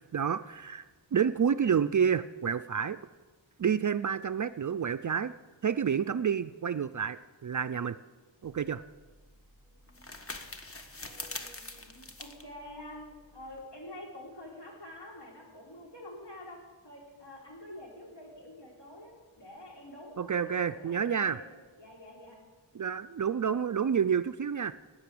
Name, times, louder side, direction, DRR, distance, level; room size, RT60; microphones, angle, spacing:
voice 1, 0.1-0.8 1.1-3.0 3.6-5.3 5.6-8.0 8.4-8.8 20.2-21.4 22.7-24.7, right 7 dB, 45° right, 12 dB, 0.4 m, -29 dB
sound 1, 8.4-13.6, left 2 dB, 30° left, 1.3 m, -45 dB
voice 2, 9.6-10.1 11.0-13.1 13.3-21.5 21.8-22.4, left 1 dB, 60° left, -2 dB, 4.6 m, -48 dB
13.0 x 9.4 x 8.4 m, 1.3 s
wide cardioid pair, 95°, 47 cm